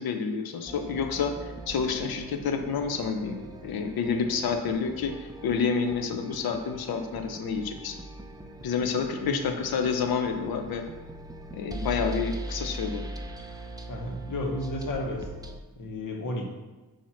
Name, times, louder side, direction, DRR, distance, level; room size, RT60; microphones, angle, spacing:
voice 1, 0.0-8.0 8.6-10.8 11.5-13.0, left 5 dB, 90° left, 5 dB, 0.7 m, -29 dB
sound 1, 0.7-15.6, right 1 dB, 10° right, 0.6 m, -41 dB
voice 2, 9.2-9.5 13.9-15.3 15.8-16.4, left 1 dB, 60° left, 1 dB, 1.3 m, -33 dB
7.5 x 2.9 x 5.7 m, 1.2 s
cardioid pair, 90°, 35 cm